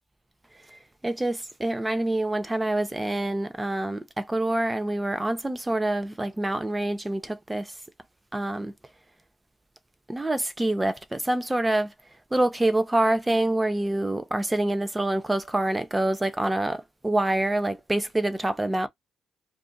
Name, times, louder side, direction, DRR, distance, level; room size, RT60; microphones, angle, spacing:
voice 1, 1.0-7.7 8.3-8.7 10.1-11.9 12.3-18.9, right 1 dB, 15° right, 0.7 m, -26 dB
2.6 x 2.5 x 3.7 m
cardioid pair, 90°, 0 cm